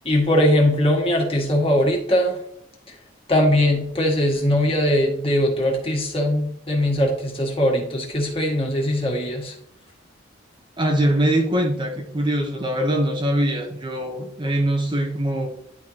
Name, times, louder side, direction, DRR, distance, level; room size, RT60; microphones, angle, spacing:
voice 1, 0.0-2.4 3.3-9.5, left 1 dB, 30° left, -1 dB, 1.8 m, -20 dB
voice 2, 10.8-15.5, right 1 dB, 25° right, 1 dB, 1.0 m, -22 dB
10.5 x 4.6 x 2.9 m, 0.70 s
head